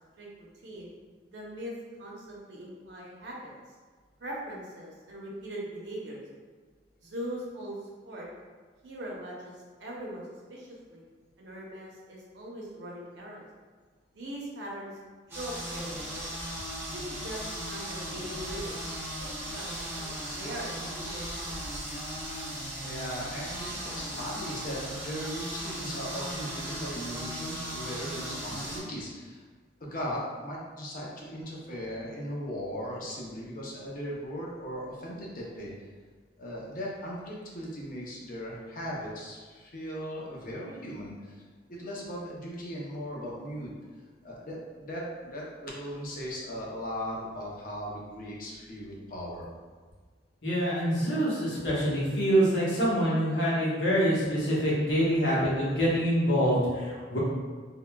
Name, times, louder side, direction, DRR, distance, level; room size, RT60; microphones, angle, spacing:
voice 1, 0.2-0.9 1.3-1.7 2.0-3.5 4.2-6.2 7.0-7.8 8.0-8.3 8.8-9.5 9.8-10.2 10.5-11.0 11.4-13.4 14.1-14.9 15.3-16.3 16.9-18.8 19.2-21.8, equal, 70° right, -3 dB, 0.7 m, -41 dB
sound 1, 15.3-28.8, right 1 dB, 15° right, 0.6 m, -37 dB
voice 2, 22.8-29.4 29.8-35.7 36.4-41.4 41.7-43.7 44.2-49.5, equal, 50° left, -3 dB, 0.6 m, -38 dB
voice 3, 50.4-57.2, equal, 80° left, -7 dB, 1.0 m, -25 dB
3.6 x 2.1 x 2.2 m, 1.5 s
head